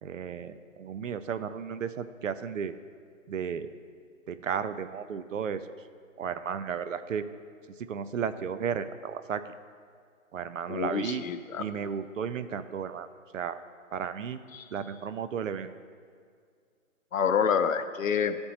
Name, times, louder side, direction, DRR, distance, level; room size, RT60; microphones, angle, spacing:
voice 1, 0.0-2.8 3.3-3.7 4.3-5.6 6.2-7.3 7.9-9.4 10.3-11.2 11.6-13.1 13.3-13.6 13.9-14.4 14.7-15.7, right 7 dB, 70° right, 12 dB, 0.5 m, -34 dB
voice 2, 10.7-11.7 14.5-14.6 17.1-18.4, left 7 dB, 75° left, 11 dB, 0.6 m, -27 dB
13.0 x 4.4 x 2.8 m, 2.1 s
hypercardioid pair, 175°, 41 cm